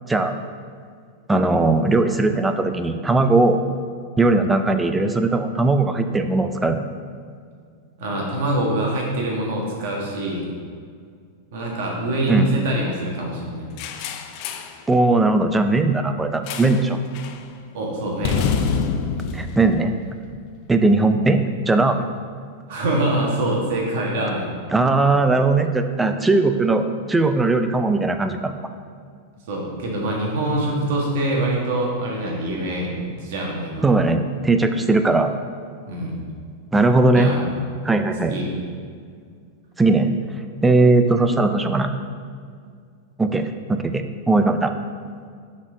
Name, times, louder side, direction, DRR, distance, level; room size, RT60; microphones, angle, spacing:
voice 1, 0.1-0.4 1.3-3.6 4.2-6.8 12.3-12.5 14.9-17.0 19.3-20.0 20.7-22.1 24.7-28.5 33.8-35.3 36.7-37.3 37.8-38.3 39.8-40.1 40.6-41.9 43.2-44.7, right 2 dB, 10° right, 8 dB, 0.4 m, -19 dB
voice 2, 8.0-10.4 11.5-13.7 17.7-18.4 22.7-24.5 29.5-33.9 35.9-36.2 37.1-37.4 38.2-38.5, right 1 dB, 65° right, -2 dB, 1.6 m, -24 dB
sound 1, 13.8-14.8 16.5-16.9 17.1-17.4 18.2-20.6, left 6 dB, 50° left, 0.5 m, -26 dB
6.0 x 4.2 x 5.1 m, 2.1 s
supercardioid pair, 130°, 0 cm